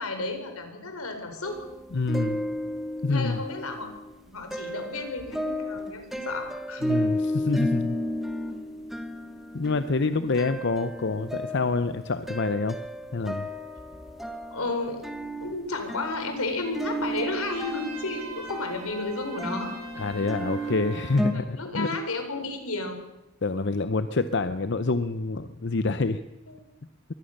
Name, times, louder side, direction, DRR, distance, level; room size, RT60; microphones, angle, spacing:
voice 1, 0.0-1.6 3.1-3.9 4.3-6.8 14.5-15.0 15.4-19.7 21.3-23.0 26.5-26.6, left 2 dB, 80° left, 6 dB, 4.4 m, -32 dB
sound 1, 1.4-4.1 4.5-21.3, equal, ahead, 1.4 m, -33 dB
voice 2, 1.9-2.4 3.0-3.4 6.8-8.0 9.5-12.8 13.1-13.5 20.0-21.9 23.4-26.2, left 3 dB, 55° left, 11 dB, 0.7 m, -27 dB
Trumpet, 17.2-21.5, right 3 dB, 90° right, 7.5 m, -43 dB
23.0 x 17.5 x 6.7 m, 0.95 s
head